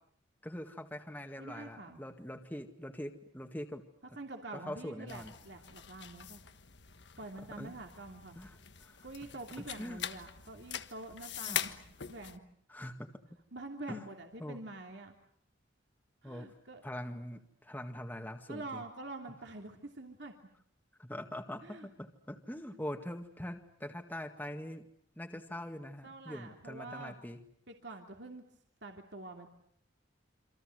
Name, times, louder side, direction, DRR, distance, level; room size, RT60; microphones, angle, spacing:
voice 1, 0.4-3.8 4.5-5.3 7.6-7.7 8.4-9.0 9.6-10.0 11.5-11.6 12.7-13.1 13.9-14.1 14.4-14.6 16.2-16.5 16.8-18.8 21.0-24.8 25.2-27.4, left 1 dB, 10° left, 4 dB, 1.9 m, -43 dB
voice 2, 1.4-2.0 4.2-6.4 7.2-8.4 9.0-12.4 13.5-15.2 16.2-16.8 18.5-20.3 21.6-21.9 26.0-27.2 27.7-28.4 28.8-29.5, right 2 dB, 60° right, 3 dB, 2.9 m, -46 dB
sound 1, 5.1-12.4, left 9 dB, 60° left, 1.4 m, -43 dB
28.0 x 26.0 x 7.9 m, 0.65 s
head